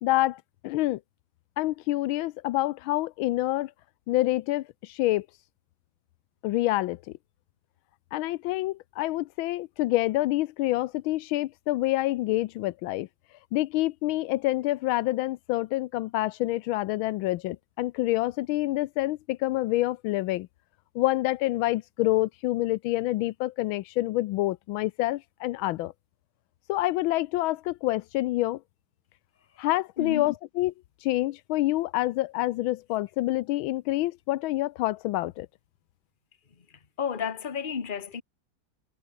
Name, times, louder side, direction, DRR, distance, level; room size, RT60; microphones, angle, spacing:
voice 1, 0.0-1.0 1.6-3.7 4.1-5.3 6.4-7.0 8.1-13.1 13.5-20.5 20.9-25.9 26.7-28.6 29.6-30.7 31.0-35.5, left 17 dB, 85° left, 1.4 m, -27 dB
voice 2, 30.0-30.3 36.5-38.2, left 7 dB, 30° left, 1.3 m, -33 dB
omnidirectional pair, 2.2 m